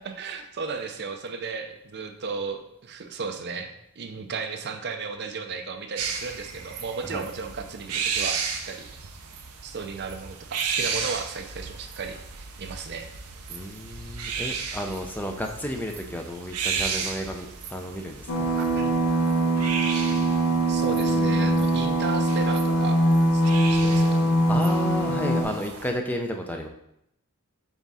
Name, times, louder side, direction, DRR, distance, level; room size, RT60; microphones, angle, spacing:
voice 1, 0.0-8.9 9.6-13.1 18.6-19.0 20.7-23.0 23.3-24.2, right 5 dB, 50° right, 6 dB, 0.6 m, -35 dB
sound 1, 6.0-25.9, right 6 dB, 90° right, 0.7 m, -34 dB
voice 2, 13.5-18.5 24.5-26.7, left 1 dB, 10° left, 3 dB, 0.5 m, -32 dB
sound 2, 18.3-25.4, right 1 dB, 70° left, 0.8 m, -22 dB
7.2 x 3.6 x 4.1 m, 0.79 s
head